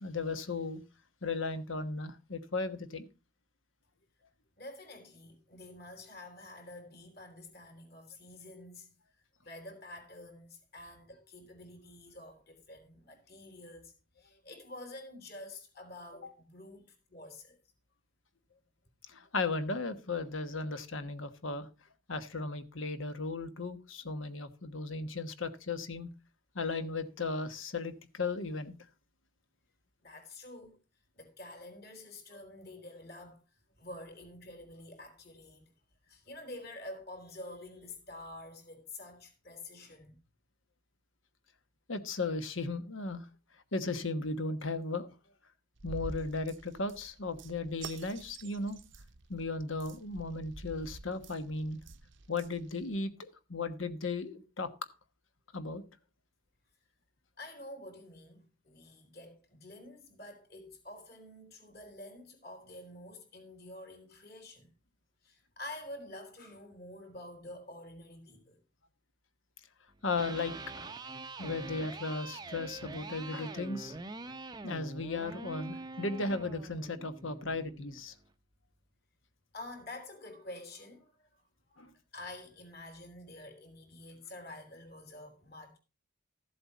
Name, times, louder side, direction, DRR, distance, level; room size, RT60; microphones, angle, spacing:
voice 1, 0.0-0.8 1.2-3.1 19.1-21.7 22.1-26.1 26.5-28.7 41.9-43.2 43.7-45.1 45.8-48.8 49.3-51.8 52.3-54.7 55.5-55.8 70.0-70.8 71.4-73.9 74.6-78.1 81.8-81.9, left 3 dB, 70° left, 1.2 m, -36 dB
voice 2, 4.6-8.9 9.4-17.6 30.0-30.8 31.2-33.4 33.8-35.7 36.0-40.1 57.4-64.7 65.2-68.6 79.5-81.1 81.7-81.9 82.1-85.8, left 1 dB, 50° left, 3.7 m, -48 dB
sound 1, 45.8-53.0, right 3 dB, 60° right, 0.8 m, -48 dB
Electric guitar, 70.0-78.1, right 3 dB, 20° right, 0.6 m, -45 dB
14.0 x 7.8 x 4.1 m
head